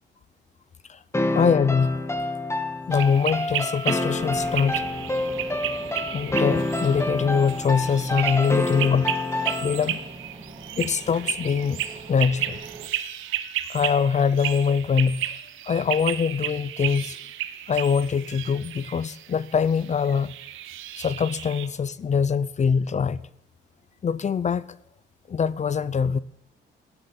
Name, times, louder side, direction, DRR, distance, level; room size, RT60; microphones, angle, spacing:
sound 1, 1.1-10.0, left 2 dB, 15° left, 1.7 m, -28 dB
voice 1, 1.3-2.0 2.9-4.9 6.1-9.1 9.6-10.0 10.7-11.8 12.1-12.6 13.7-15.3 15.6-17.2 17.7-20.3 21.0-23.3 24.0-24.7 25.3-26.2, left 6 dB, 35° left, 0.6 m, -23 dB
sound 2, 2.9-21.7, right 12 dB, 85° right, 1.1 m, -33 dB
sound 3, 4.2-12.9, right 3 dB, 30° right, 2.4 m, -43 dB
14.5 x 10.5 x 7.8 m
cardioid pair, 90°, 20 cm